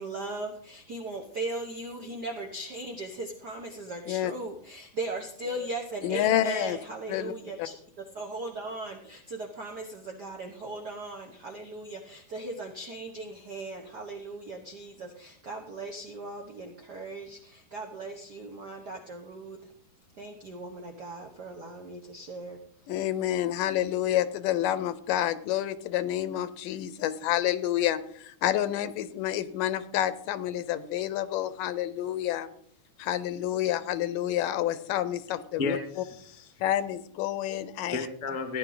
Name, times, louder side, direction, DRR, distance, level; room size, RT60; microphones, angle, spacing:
voice 1, 0.0-7.8 8.1-19.6 20.2-22.6, right 2 dB, 90° right, 2 dB, 0.8 m, -38 dB
voice 2, 6.0-6.8 7.1-7.3 22.9-32.5 33.0-35.8 36.6-38.0, left 12 dB, 90° left, 14 dB, 2.4 m, -28 dB
voice 3, 35.3-36.6 37.9-38.6, left 4 dB, 50° left, 6 dB, 0.5 m, -34 dB
15.5 x 10.5 x 3.9 m, 0.63 s
omnidirectional pair, 3.7 m